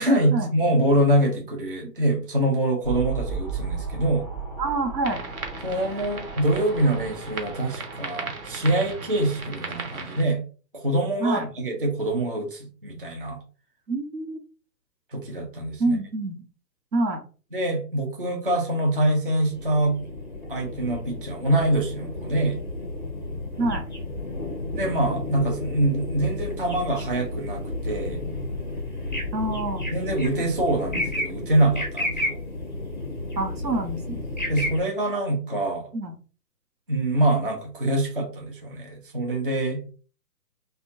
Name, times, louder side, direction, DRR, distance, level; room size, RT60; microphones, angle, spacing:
voice 1, 0.0-4.3 5.6-10.4 10.7-13.4 15.1-16.0 17.5-20.0 20.5-22.6 24.7-28.2 29.9-32.4 34.5-35.9 36.9-39.8, right 1 dB, 35° right, 1 dB, 0.4 m, -25 dB
sound 1, 2.8-10.0, right 5 dB, 5° right, 0.7 m, -36 dB
voice 2, 4.6-5.2 11.2-11.5 13.9-14.4 15.8-16.4 16.9-17.2 23.6-23.8 29.3-29.8 33.4-34.2 35.9-36.1, right 2 dB, 90° right, 5 dB, 0.9 m, -26 dB
sound 2, 5.0-10.2, right 4 dB, 60° right, 0.8 m, -37 dB
sound 3, 19.5-34.8, left 2 dB, 30° left, 0.4 m, -32 dB
2.6 x 2.2 x 2.6 m, 0.37 s
figure-of-eight pair, 140°, 50 cm